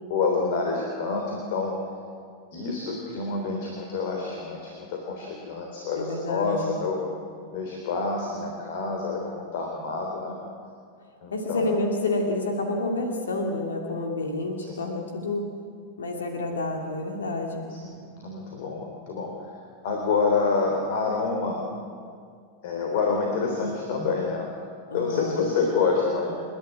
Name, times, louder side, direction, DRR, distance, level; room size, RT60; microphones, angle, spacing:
voice 1, 0.1-1.8 2.5-7.0 7.5-10.4 11.2-11.7 14.7-14.8 17.8-19.5 19.8-21.6 22.6-24.5 24.9-26.3, left 4 dB, 50° left, 1 dB, 3.4 m, -27 dB
voice 2, 6.0-6.8 11.3-15.5 16.0-17.7 24.9-25.5, left 2 dB, 70° left, 2 dB, 2.5 m, -29 dB
29.0 x 11.0 x 9.5 m, 2.2 s
figure-of-eight pair, 90°, 0 cm